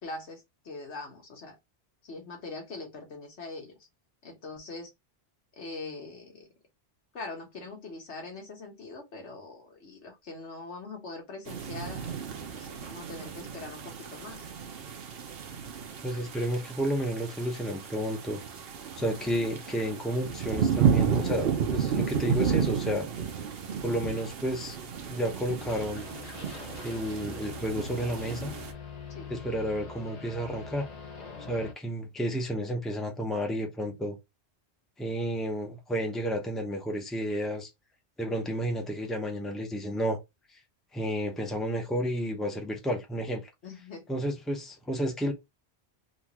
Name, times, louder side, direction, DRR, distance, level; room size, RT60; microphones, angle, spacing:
voice 1, 0.0-1.6 2.0-3.7 4.2-4.9 5.6-6.5 7.1-12.2 12.5-14.5 19.0-19.4 29.1-29.3 43.6-44.2, left 3 dB, 90° left, 1.6 m, -42 dB
sound 1, 11.5-28.7, right 7 dB, 65° right, 0.9 m, -32 dB
voice 2, 16.0-18.4 19.0-23.1 23.8-24.8 25.0-26.1 26.8-28.5 29.3-30.9 31.4-34.2 35.0-37.7 38.2-40.2 40.9-43.5 44.1-45.3, equal, ahead, 0.7 m, -31 dB
sound 2, 25.6-31.7, left 5 dB, 40° left, 0.9 m, -43 dB
3.9 x 2.5 x 3.0 m
omnidirectional pair, 1.1 m